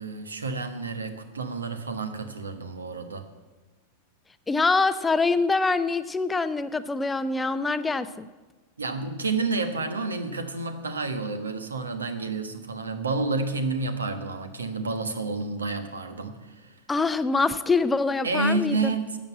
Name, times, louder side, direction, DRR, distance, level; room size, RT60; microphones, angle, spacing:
voice 1, 0.0-3.2 8.8-16.8 18.2-19.2, right 3 dB, 75° right, 9 dB, 1.3 m, -30 dB
voice 2, 4.5-8.3 16.9-18.9, left 3 dB, 10° left, 12 dB, 0.5 m, -24 dB
12.5 x 7.6 x 8.3 m, 1.3 s
figure-of-eight pair, 90°, 0 cm